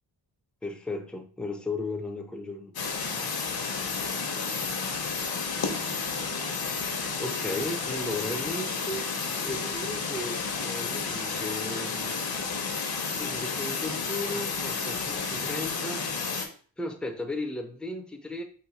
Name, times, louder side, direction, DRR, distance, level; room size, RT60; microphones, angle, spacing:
voice 1, 0.6-2.8 7.2-9.2 9.4-12.2 13.2-16.0 16.8-18.4, left 2 dB, ahead, 0.5 m, -35 dB
sound 1, 2.7-16.5, left 5 dB, 60° left, 0.8 m, -31 dB
4.2 x 2.7 x 3.9 m
wide cardioid pair, 120°, 42 cm